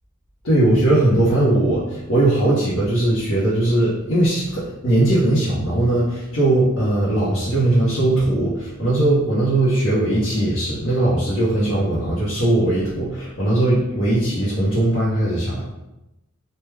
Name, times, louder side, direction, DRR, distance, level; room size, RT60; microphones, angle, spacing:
voice 1, 0.4-15.6, right 1 dB, 70° left, -8 dB, 0.8 m, -19 dB
3.3 x 2.2 x 3.3 m, 0.94 s
head